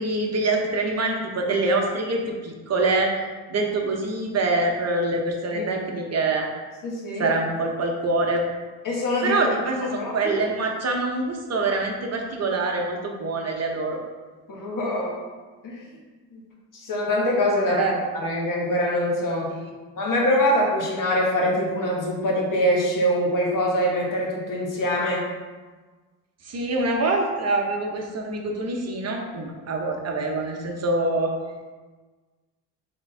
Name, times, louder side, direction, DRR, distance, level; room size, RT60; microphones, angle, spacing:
voice 1, 0.0-3.1 3.5-6.5 7.2-8.4 9.2-14.0 17.7-17.9 19.5-19.7 26.4-31.3, right 2 dB, 40° right, 1 dB, 0.9 m, -25 dB
voice 2, 6.8-7.2 8.8-9.3 9.9-10.3 14.5-15.2 15.6-15.8 16.3-16.4 16.7-17.8 18.1-19.5 20.0-25.2, equal, 50° left, -2 dB, 1.4 m, -24 dB
3.8 x 3.5 x 3.3 m, 1.3 s
supercardioid pair, 75°, 41 cm